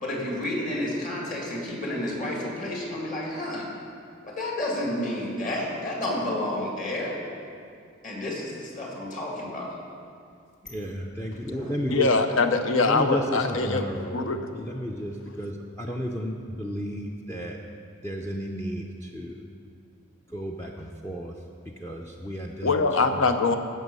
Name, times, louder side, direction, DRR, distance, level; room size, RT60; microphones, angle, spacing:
voice 1, 0.0-3.7 4.2-7.2 8.0-9.7, left 1 dB, 40° left, -3 dB, 2.4 m, -30 dB
voice 2, 10.6-12.1 12.8-14.2 14.5-17.6 18.0-19.4 20.3-23.3, equal, 10° left, 0 dB, 0.5 m, -33 dB
voice 3, 11.9-13.8 14.1-14.4 22.6-23.6, left 3 dB, 70° left, 7 dB, 0.8 m, -23 dB
15.5 x 6.3 x 5.5 m, 2.4 s
head